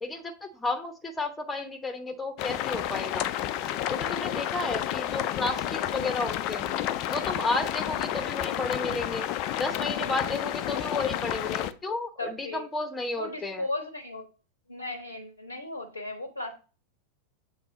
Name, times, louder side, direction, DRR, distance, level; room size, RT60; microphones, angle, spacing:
voice 1, 0.0-3.3 3.9-6.7 7.1-9.2 9.6-13.6, left 3 dB, 10° left, 8 dB, 0.9 m, -32 dB
sound 1, 2.4-11.7, left 12 dB, 40° left, 0.4 m, -31 dB
voice 2, 12.2-12.6 13.2-14.3 14.7-16.5, left 2 dB, 80° left, 6 dB, 0.7 m, -36 dB
7.3 x 3.8 x 4.0 m, 0.35 s
figure-of-eight pair, 90°, 0 cm